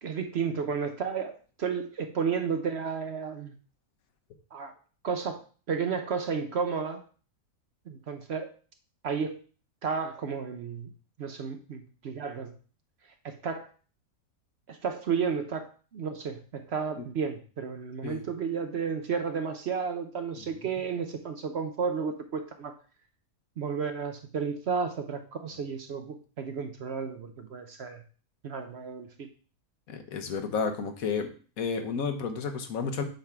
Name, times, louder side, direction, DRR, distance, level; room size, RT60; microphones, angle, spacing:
voice 1, 0.0-3.6 4.5-4.7 5.0-5.4 5.7-7.0 7.9-8.5 9.0-9.4 9.8-10.9 11.2-12.5 13.2-13.7 14.7-22.7 23.6-28.0 28.4-29.3, right 6 dB, 55° right, 7 dB, 0.8 m, -32 dB
voice 2, 29.9-31.3 31.6-33.0, left 5 dB, 70° left, 6 dB, 1.4 m, -31 dB
7.8 x 3.6 x 5.8 m, 0.40 s
omnidirectional pair, 1.5 m